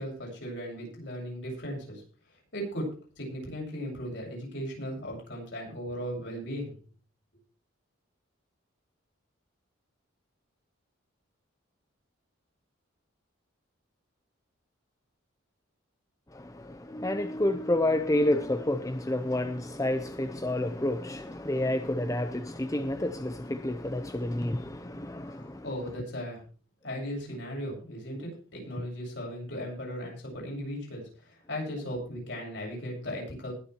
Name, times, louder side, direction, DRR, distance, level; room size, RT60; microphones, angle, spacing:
voice 1, 0.0-2.0 2.5-6.7 25.3-26.4 26.8-33.5, equal, 55° left, 7.7 m, -37 dB
voice 2, 16.3-25.6 28.8-28.9, left 1 dB, 15° left, 0.7 m, -29 dB
20.5 x 7.3 x 4.6 m
head